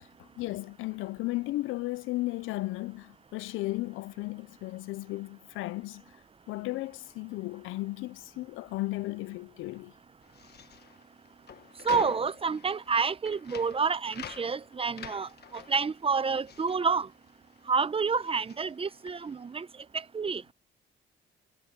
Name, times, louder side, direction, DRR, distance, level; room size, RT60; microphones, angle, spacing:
voice 1, 0.2-6.0 6.5-9.9, left 19 dB, 90° left, 0.5 m, -35 dB
sound 1, 10.2-17.7 18.0-19.5, left 9 dB, 55° left, 1.5 m, -46 dB
voice 2, 11.8-17.1 17.7-19.7 19.9-20.4, right 5 dB, 30° right, 0.8 m, -29 dB
cardioid pair, 90°, 20 cm